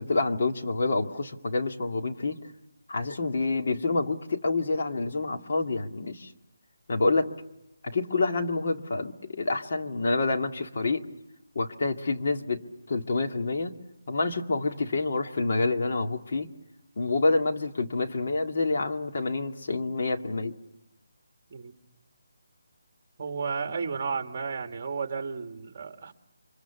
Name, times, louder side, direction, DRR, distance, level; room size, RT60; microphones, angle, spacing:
voice 1, 0.0-2.4 2.9-6.3 6.9-7.3 7.8-11.0 11.6-13.7 14.1-16.5 17.0-20.6, left 3 dB, 45° left, 4 dB, 2.0 m, -27 dB
voice 2, 23.2-26.1, right 5 dB, 30° right, 6 dB, 1.9 m, -33 dB
30.0 x 25.0 x 7.1 m, 0.87 s
hypercardioid pair, 170°, 0 cm